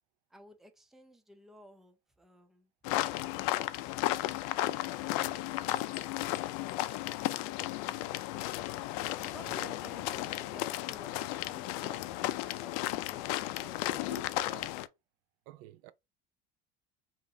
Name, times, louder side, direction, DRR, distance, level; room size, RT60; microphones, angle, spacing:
voice 1, 0.3-2.7 4.6-5.0 9.2-12.8 13.1-14.2, equal, ahead, 0.5 m, -54 dB
sound 1, 2.8-14.9, left 16 dB, 85° left, 0.4 m, -34 dB
voice 2, 9.4-9.8 13.9-14.8 15.5-15.9, right 13 dB, 85° right, 0.5 m, -50 dB
5.0 x 2.9 x 2.7 m
cardioid pair, 165°, 19 cm